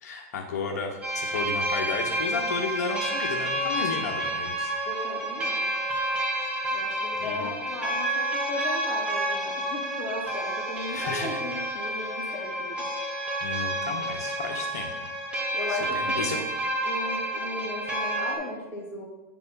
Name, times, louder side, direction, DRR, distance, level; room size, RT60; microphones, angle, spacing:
voice 1, 0.0-4.7 7.2-7.5 10.9-11.4 13.4-14.9 15.7-16.4, left 4 dB, 85° left, 1 dB, 1.2 m, -33 dB
sound 1, 1.0-18.4, right 1 dB, 15° right, 1.8 m, -29 dB
voice 2, 4.9-5.7 6.7-12.9 15.5-16.5 16.8-19.1, left 2 dB, 25° left, -4 dB, 2.6 m, -36 dB
9.2 x 4.2 x 5.5 m, 1.1 s
supercardioid pair, 135°, 8 cm